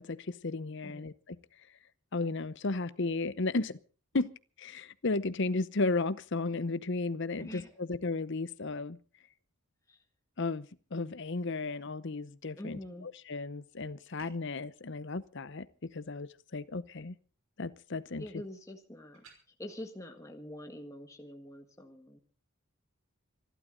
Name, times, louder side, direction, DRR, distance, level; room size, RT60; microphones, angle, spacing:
voice 1, 0.0-1.4 2.1-3.8 4.1-4.3 4.6-9.0 10.4-17.1 17.6-18.4, left 3 dB, 55° left, 0.8 m, -34 dB
voice 2, 7.4-7.8 9.9-10.0 12.6-13.1 18.2-19.2 19.6-22.2, left 1 dB, 15° left, 1.5 m, -45 dB
sound 1, 14.2-14.6 19.1-19.4, right 4 dB, 75° right, 5.8 m, -55 dB
26.5 x 12.0 x 3.9 m
head